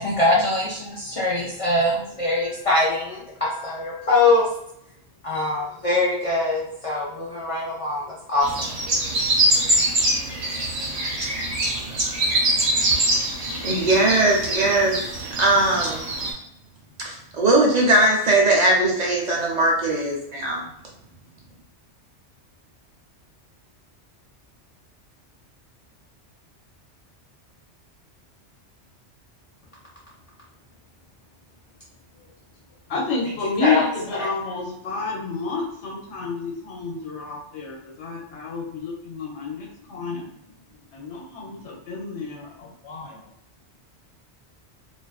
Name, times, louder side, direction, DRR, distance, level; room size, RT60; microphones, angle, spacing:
voice 1, 0.0-4.5 5.2-8.7 33.6-33.8 34.1-34.3, left 2 dB, 55° left, -6 dB, 0.4 m, -23 dB
sound 1, 8.4-16.3, right 1 dB, 65° right, 1.0 m, -24 dB
voice 2, 13.6-15.0 15.4-16.0 17.0-20.6, right 2 dB, 50° right, -2 dB, 0.6 m, -19 dB
voice 3, 32.9-40.4 40.9-43.3, left 4 dB, 80° left, -3 dB, 1.0 m, -29 dB
2.4 x 2.4 x 2.3 m, 0.77 s
omnidirectional pair, 1.2 m